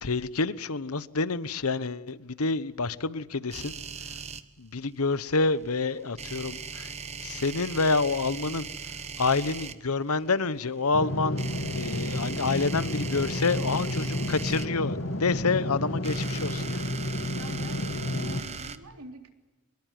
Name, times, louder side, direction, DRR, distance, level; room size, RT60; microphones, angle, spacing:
voice 1, 0.0-3.7 4.6-6.9 7.2-8.7 9.2-11.4 11.7-16.9 18.0-18.1, left 3 dB, 85° left, 1.1 m, -28 dB
sound 1, 3.5-4.4 6.2-9.8 11.4-14.7 15.8-18.8, right 5 dB, 30° right, 1.0 m, -39 dB
sound 2, 10.9-18.4, left 1 dB, 60° left, 2.1 m, -31 dB
voice 2, 17.3-19.3, right 2 dB, 85° right, 3.7 m, -45 dB
24.0 x 21.5 x 9.4 m
head